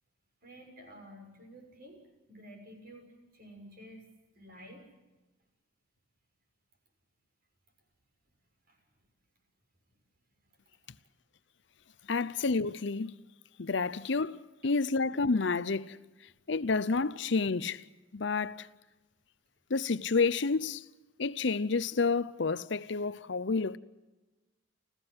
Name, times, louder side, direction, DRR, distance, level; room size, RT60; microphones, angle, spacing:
voice 1, 0.4-3.1 3.3-4.0 4.3-4.9 8.7-8.8, equal, 50° right, 6.4 m, -51 dB
voice 2, 12.1-13.2 13.6-16.0 16.5-17.8 18.1-18.7 19.7-20.9 21.2-23.8, left 4 dB, 65° left, 0.7 m, -29 dB
30.0 x 15.0 x 8.0 m
head